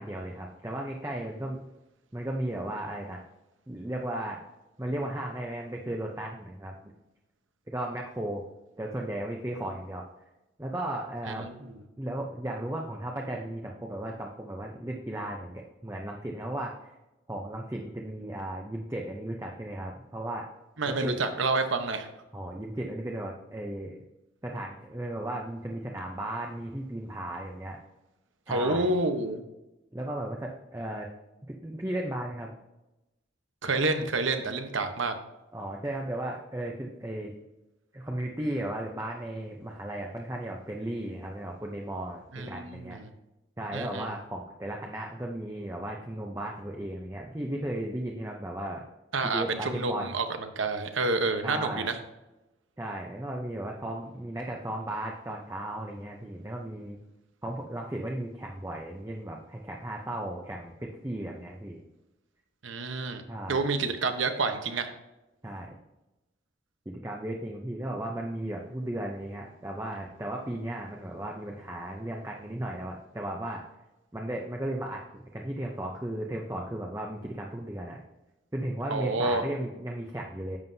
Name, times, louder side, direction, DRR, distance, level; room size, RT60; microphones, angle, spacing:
voice 1, 0.0-1.6 2.1-3.2 3.7-4.4 4.8-6.8 7.7-8.4 8.8-10.0 10.6-11.7 12.0-16.9 17.3-20.5 20.9-21.2 22.3-24.0 24.4-27.8 28.5-29.0 29.9-31.1 31.5-32.5 35.5-37.3 37.9-43.0 43.6-48.9 49.2-50.2 51.4-52.0 52.8-57.0 57.4-61.8 63.3-63.6 65.4-65.7 66.9-73.6 74.1-78.0 78.5-80.6, right 1 dB, 15° right, 0 dB, 0.6 m, -35 dB
voice 2, 11.3-11.7 20.8-22.1 28.5-29.4 33.6-35.1 42.3-43.1 43.7-44.1 49.1-50.3 50.6-52.0 62.6-63.2 63.5-64.9 78.9-79.4, right 3 dB, 80° right, 7 dB, 1.0 m, -28 dB
11.0 x 7.5 x 2.7 m, 0.99 s
head